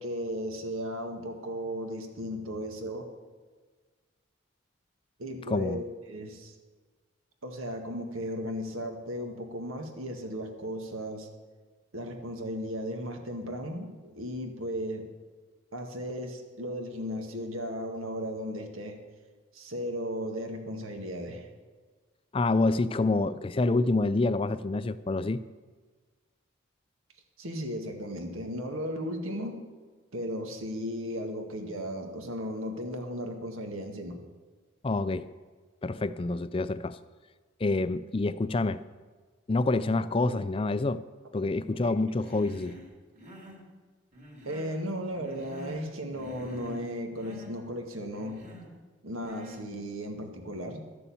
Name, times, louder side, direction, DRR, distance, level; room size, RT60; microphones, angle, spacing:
voice 1, 0.0-3.1 5.2-6.6 7.4-11.3 11.9-15.1 15.7-19.0 19.5-21.5 27.4-29.6 30.1-34.2 41.4-41.9 44.5-48.4 49.0-50.8, equal, 90° right, 4 dB, 1.8 m, -36 dB
voice 2, 5.5-5.8 22.3-25.4 34.8-35.3 35.8-37.0 37.6-38.8 39.5-41.0 41.3-42.8, left 2 dB, 25° left, 14 dB, 0.4 m, -27 dB
Human voice, 42.2-42.9 43.1-43.6 44.1-44.8 45.1-45.9 46.1-46.9 47.1-47.5 48.1-48.7 49.2-49.6, equal, 35° right, 2.4 m, -45 dB
12.5 x 7.0 x 8.5 m, 1.4 s
head